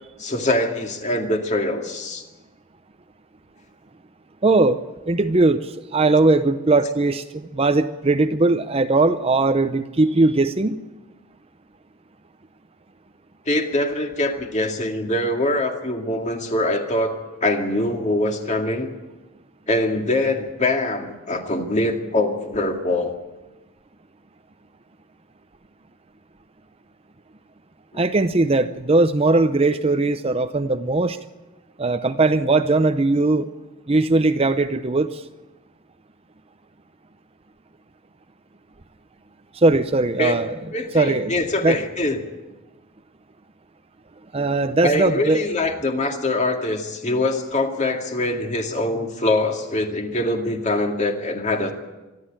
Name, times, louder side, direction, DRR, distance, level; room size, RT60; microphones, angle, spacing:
voice 1, 0.2-2.2 13.5-18.9 19.7-23.2 27.9-28.0 40.2-40.3 40.7-42.3 44.8-51.7, left 2 dB, 35° left, 3 dB, 2.2 m, -23 dB
voice 2, 4.4-4.8 5.1-5.6 5.9-10.8 28.0-31.2 31.8-33.5 33.9-35.1 39.6-40.5 40.9-41.3 41.6-41.8 44.3-45.4, right 2 dB, 30° right, 10 dB, 0.6 m, -19 dB
25.5 x 11.0 x 10.0 m, 1.1 s
head